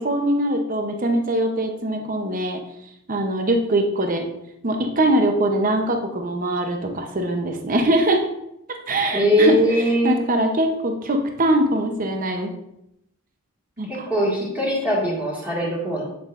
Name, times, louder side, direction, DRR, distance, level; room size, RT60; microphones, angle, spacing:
voice 1, 0.0-2.6 3.1-4.3 4.6-8.2 8.9-9.6 10.0-12.5 13.8-14.1, right 1 dB, 40° right, 4 dB, 0.8 m, -22 dB
voice 2, 9.1-10.2 13.9-16.0, equal, 10° right, -6 dB, 1.8 m, -21 dB
8.3 x 6.9 x 2.5 m, 0.81 s
head